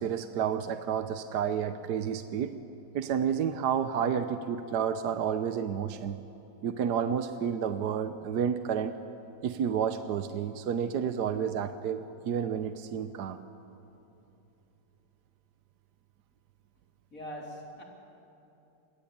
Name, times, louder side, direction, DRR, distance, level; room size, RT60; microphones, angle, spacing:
voice 1, 0.0-2.6 2.9-6.2 6.6-8.9 9.4-13.4, right 8 dB, 65° right, 9 dB, 1.4 m, -30 dB
voice 2, 17.1-17.8, equal, 45° left, -1 dB, 4.1 m, -41 dB
27.0 x 22.0 x 8.7 m, 2.9 s
omnidirectional pair, 1.9 m